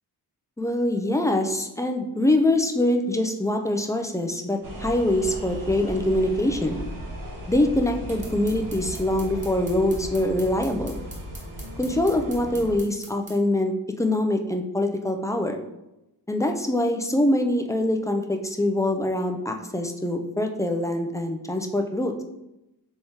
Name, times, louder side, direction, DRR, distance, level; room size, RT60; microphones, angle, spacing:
voice 1, 0.6-6.8 7.5-11.0 11.8-15.6 16.3-22.2, left 1 dB, 10° left, 4 dB, 0.3 m, -24 dB
Subway in Washington DC from outside, 4.6-12.8, right 1 dB, 50° right, 1.0 m, -36 dB
sound 1, 8.1-13.4, right 1 dB, 20° right, 1.2 m, -44 dB
4.2 x 3.5 x 2.8 m, 0.92 s
cardioid pair, 85°, 40 cm